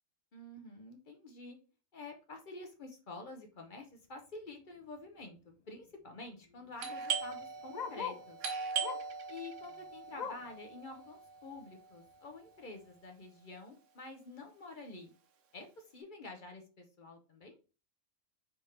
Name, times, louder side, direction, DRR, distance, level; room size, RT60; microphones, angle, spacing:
voice 1, 0.3-1.6 1.9-5.4 5.7-8.4 9.3-15.1 15.5-17.6, left 3 dB, 45° left, 4 dB, 0.8 m, -49 dB
Bark, 4.6-4.8 5.2-5.3 5.5-8.3 8.8-9.2 9.6-10.6 11.0-11.1 11.5-11.6 12.3-12.4, left 7 dB, 65° left, 0.4 m, -44 dB
Doorbell, 6.8-12.2, right 6 dB, 70° right, 1.0 m, -40 dB
3.5 x 3.4 x 4.1 m, 0.35 s
omnidirectional pair, 1.4 m